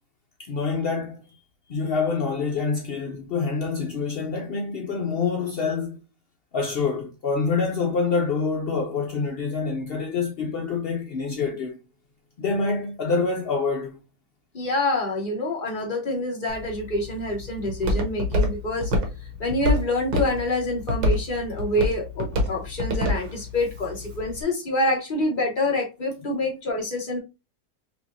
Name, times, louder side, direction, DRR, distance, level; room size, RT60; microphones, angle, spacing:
voice 1, 0.4-1.4 1.7-6.0 6.5-11.8 12.4-14.0, left 4 dB, 80° left, 0.5 m, -26 dB
voice 2, 14.5-18.9 19.4-27.2, left 1 dB, 35° left, 1.2 m, -26 dB
Walk footsteps, 16.5-24.4, left 1 dB, 70° right, 1.5 m, -28 dB
5.5 x 2.5 x 2.6 m
omnidirectional pair, 1.8 m